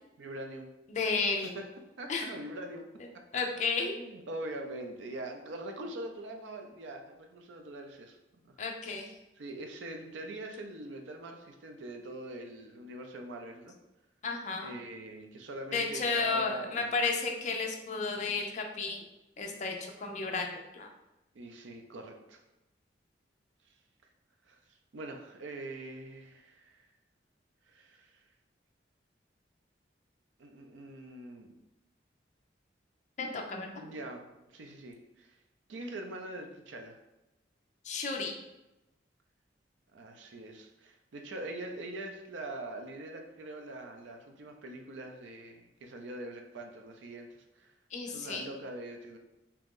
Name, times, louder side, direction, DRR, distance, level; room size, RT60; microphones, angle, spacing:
voice 1, 0.2-0.7 1.4-1.7 2.0-2.9 3.8-8.5 8.8-8.9 9.4-13.7 14.6-17.0 21.3-22.4 24.5-24.6 24.9-26.9 27.7-28.2 30.4-31.5 33.7-35.4 35.7-37.0 39.9-47.7 48.1-49.2, right 1 dB, 80° right, 4 dB, 0.5 m, -43 dB
voice 2, 0.9-1.6 2.1-2.3 3.3-4.0 8.6-9.1 14.2-14.7 15.7-19.0 19.4-20.9 33.2-33.7 37.8-38.3 47.9-48.4, left 4 dB, 40° left, 2 dB, 0.4 m, -32 dB
2.9 x 2.5 x 3.6 m, 0.95 s
head